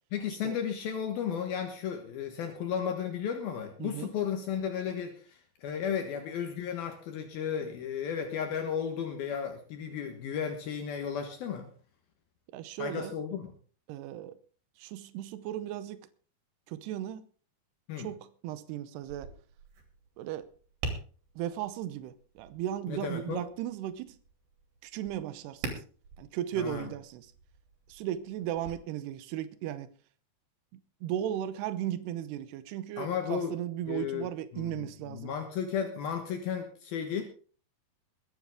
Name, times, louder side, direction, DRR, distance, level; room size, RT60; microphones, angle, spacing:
voice 1, 0.1-11.7 12.8-13.5 17.9-18.1 22.9-23.4 26.6-26.9 33.0-33.5 33.9-37.2, left 7 dB, 70° left, 3.1 m, -34 dB
voice 2, 12.5-13.1 13.9-14.4 14.8-16.0 16.7-17.2 18.0-19.3 20.2-20.5 21.4-24.2 24.8-25.8 26.2-27.3 27.9-29.9 31.0-35.3, right 11 dB, 85° right, 2.9 m, -36 dB
Tap, 19.0-28.7, right 3 dB, 65° right, 4.3 m, -45 dB
22.0 x 9.6 x 3.7 m
omnidirectional pair, 4.6 m